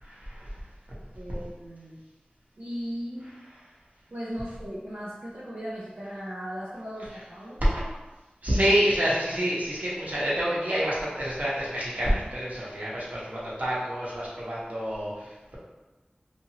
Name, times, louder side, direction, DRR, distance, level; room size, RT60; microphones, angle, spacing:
voice 1, 0.0-0.7 3.2-3.3 7.6-7.8 8.4-15.6, equal, 50° right, -7 dB, 0.9 m, -27 dB
voice 2, 1.1-2.0 2.6-3.3 4.1-7.6, equal, 70° right, -8 dB, 0.5 m, -37 dB
2.8 x 2.5 x 2.8 m, 1.1 s
wide cardioid pair, 50°, 3 cm